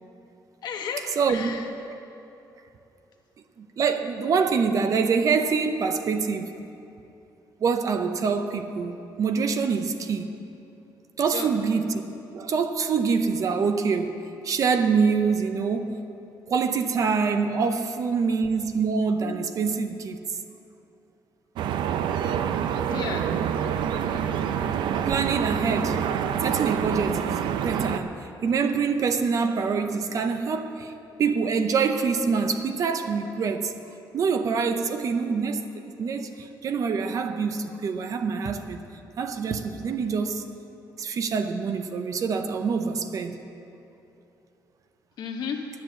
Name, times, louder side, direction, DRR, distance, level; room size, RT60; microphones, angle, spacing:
voice 1, 0.6-1.7 11.3-11.5 22.9-23.3 45.2-45.7, left 6 dB, 65° left, 3 dB, 1.2 m, -33 dB
voice 2, 1.2-1.5 1.9-2.0 3.6-6.5 7.6-10.3 11.2-11.9 12.3-14.2 14.4-16.0 16.5-20.2 24.0-24.2 25.0-26.1 26.4-30.9 31.2-33.7 34.1-38.8 39.2-40.4 41.0-43.4, right 5 dB, 45° right, 8 dB, 0.7 m, -25 dB
sound 1, 21.6-28.0, right 8 dB, 90° right, 0.5 m, -27 dB
10.5 x 9.1 x 7.7 m, 2.9 s
cardioid pair, 155°, 8 cm